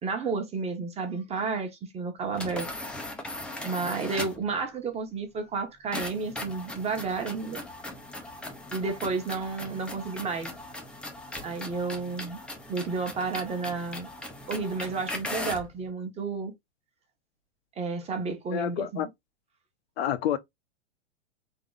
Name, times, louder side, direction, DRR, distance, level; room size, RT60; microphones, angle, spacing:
voice 1, 0.0-2.7 3.6-7.6 8.7-10.5 11.4-12.4 12.7-14.1 14.5-16.5 17.8-19.1, right 4 dB, 15° right, 1.1 m, -31 dB
sound 1, 2.3-4.5 5.9-15.7, left 1 dB, 5° left, 0.5 m, -39 dB
voice 2, 18.5-19.1 20.0-20.4, left 10 dB, 60° left, 0.7 m, -28 dB
3.8 x 3.0 x 3.7 m
hypercardioid pair, 135°, 35 cm